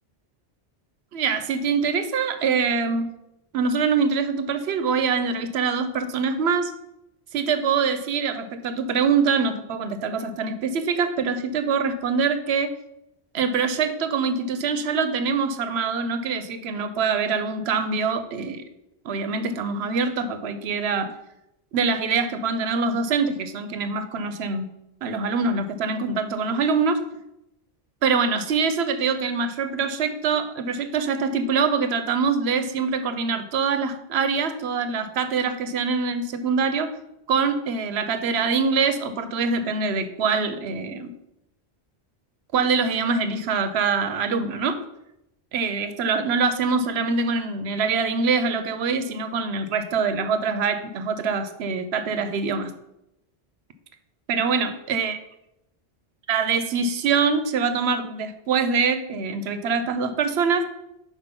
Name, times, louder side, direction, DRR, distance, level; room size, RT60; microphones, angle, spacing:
voice 1, 1.1-3.1 3.5-6.7 7.3-12.7 13.3-18.6 19.0-21.1 21.7-24.7 25.0-27.0 28.0-36.9 37.3-41.1 42.5-44.8 45.5-52.7 54.3-55.2 56.3-60.7, right 5 dB, 85° right, 10 dB, 0.9 m, -24 dB
5.5 x 4.9 x 5.2 m, 0.84 s
omnidirectional pair, 1.1 m